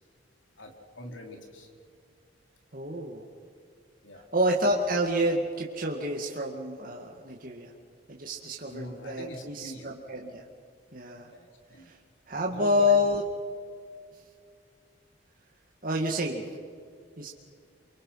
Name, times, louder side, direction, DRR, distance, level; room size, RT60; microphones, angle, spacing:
voice 1, 0.6-1.7 4.0-4.3 8.6-9.9 11.3-11.9 12.5-13.1, equal, 75° left, 2 dB, 3.7 m, -43 dB
voice 2, 2.7-3.2 4.3-7.7 8.1-10.4 10.9-11.3 11.9-12.0 12.3-13.2 15.8-16.4 17.2-17.3, left 1 dB, 45° right, -1 dB, 2.0 m, -28 dB
28.5 x 24.5 x 5.7 m, 2.2 s
head